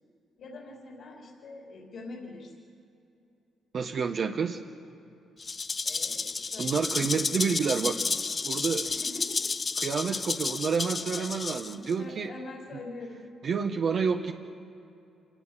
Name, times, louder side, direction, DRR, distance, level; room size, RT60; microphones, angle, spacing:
voice 1, 0.4-2.5 5.8-7.1 8.8-9.5 11.2-11.6 12.0-13.3, left 2 dB, 60° left, -1 dB, 3.7 m, -44 dB
voice 2, 3.7-4.6 6.6-8.0 8.4-8.9 9.8-12.3 13.4-14.3, right 6 dB, 55° right, 3 dB, 1.1 m, -29 dB
Rattle (instrument), 5.4-11.9, left 4 dB, 30° left, 0.4 m, -31 dB
27.0 x 17.5 x 7.5 m, 2.7 s
cardioid pair, 90°, 0 cm